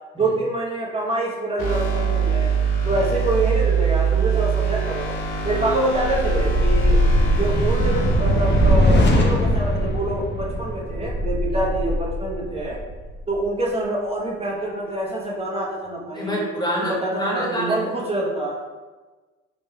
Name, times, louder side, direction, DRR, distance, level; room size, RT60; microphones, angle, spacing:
voice 1, 0.1-2.5 2.8-5.1 5.4-7.0 7.3-12.8 13.3-16.4 16.8-18.6, right 2 dB, 15° right, -4 dB, 0.9 m, -26 dB
sound 1, 1.6-8.7, right 6 dB, 70° left, 0.7 m, -23 dB
sound 2, 5.2-13.4, left 1 dB, 30° left, 0.6 m, -21 dB
voice 2, 16.1-17.8, equal, 10° left, -4 dB, 1.0 m, -27 dB
3.2 x 3.0 x 2.2 m, 1.3 s
hypercardioid pair, 50°, 36 cm